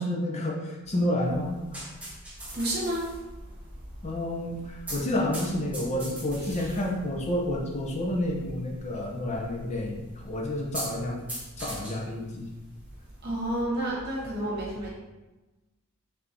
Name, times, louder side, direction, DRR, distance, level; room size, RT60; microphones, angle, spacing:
voice 1, 0.0-1.8 4.0-11.2 11.6-12.5, left 1 dB, 30° left, -1 dB, 0.6 m, -30 dB
sound 1, 1.2-13.6, right 1 dB, 5° right, 1.0 m, -43 dB
voice 2, 2.5-3.1 13.2-14.9, right 1 dB, 50° right, -4 dB, 1.1 m, -30 dB
3.4 x 2.9 x 3.8 m, 1.1 s
head